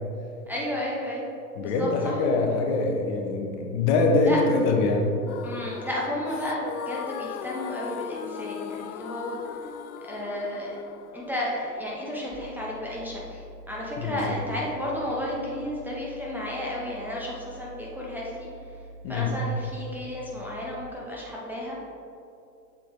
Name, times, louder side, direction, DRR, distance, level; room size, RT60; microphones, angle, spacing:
voice 1, 0.5-1.3 1.6-2.1 4.2-4.4 5.4-9.4 10.1-10.8 11.1-13.4 13.7-18.5 19.1-21.8, left 1 dB, 5° right, -6 dB, 0.8 m, -32 dB
voice 2, 1.6-5.1 14.0-14.4 19.0-19.3, left 3 dB, 45° left, 2 dB, 1.0 m, -24 dB
sound 1, 5.3-13.2, left 9 dB, 65° left, 0.5 m, -39 dB
sound 2, 12.3-20.9, right 1 dB, 35° right, 0.9 m, -46 dB
6.8 x 4.9 x 3.6 m, 2.6 s
hypercardioid pair, 105°, 49 cm